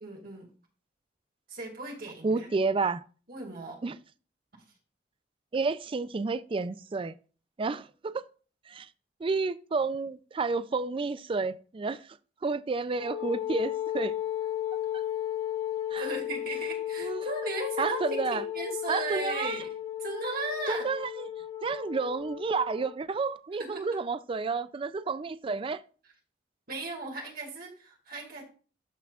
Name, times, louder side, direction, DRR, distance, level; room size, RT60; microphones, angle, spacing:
voice 1, 0.0-0.5 1.5-2.5 3.3-3.8 16.0-19.7 20.0-20.9 23.6-24.0 26.7-28.4, right 2 dB, 55° right, 2.1 m, -37 dB
voice 2, 2.2-3.0 3.8-4.0 5.5-7.1 7.6-8.1 8.7-8.9 9.2-12.0 12.4-14.1 14.9-15.0 15.9-16.1 17.0-17.3 17.8-18.4 18.9-19.6 20.7-21.3 21.6-25.8, right 4 dB, 30° right, 0.4 m, -30 dB
Wind instrument woodwind instrument, 13.0-22.9, left 11 dB, 35° left, 2.3 m, -34 dB
13.0 x 5.8 x 2.4 m
head